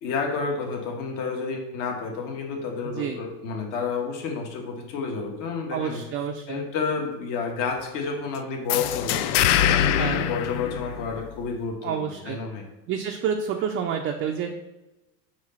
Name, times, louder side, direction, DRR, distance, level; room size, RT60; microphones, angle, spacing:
voice 1, 0.0-6.0 6.5-12.6, left 5 dB, 55° left, 1 dB, 1.4 m, -30 dB
voice 2, 5.7-6.6 10.0-10.3 11.8-12.4 12.9-14.5, right 7 dB, 30° right, 3 dB, 0.4 m, -29 dB
sound 1, 8.7-11.4, left 10 dB, 70° left, 0.5 m, -23 dB
4.9 x 3.8 x 5.6 m, 0.99 s
supercardioid pair, 130°, 38 cm